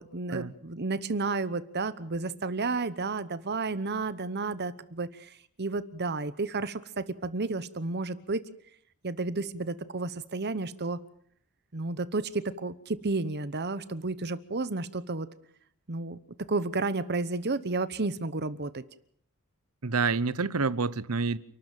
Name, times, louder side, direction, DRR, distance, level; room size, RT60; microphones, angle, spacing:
voice 1, 0.0-8.4 9.0-11.0 11.7-15.3 15.9-16.2 16.5-18.8, right 3 dB, 50° right, 1.0 m, -32 dB
voice 2, 19.8-21.4, right 4 dB, 85° right, 1.0 m, -28 dB
29.5 x 12.5 x 9.1 m
head